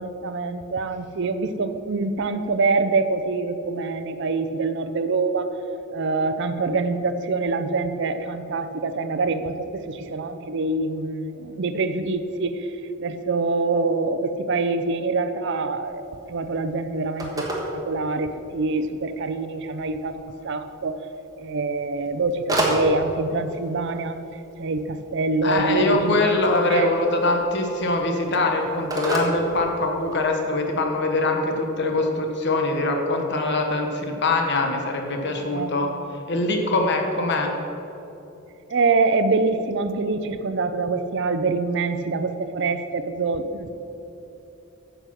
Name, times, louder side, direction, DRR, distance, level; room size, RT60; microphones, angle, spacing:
voice 1, 0.0-5.5 5.9-12.7 13.0-21.0 21.4-24.2 24.6-26.2 26.6-26.9 35.2-35.7 38.7-43.7, right 3 dB, 60° right, 10 dB, 0.6 m, -25 dB
Telephone, 15.8-30.3, equal, 20° right, 1.4 m, -33 dB
voice 2, 25.4-35.9 36.3-37.5, left 2 dB, 60° left, 3 dB, 1.0 m, -23 dB
9.4 x 6.6 x 5.8 m, 3.0 s
head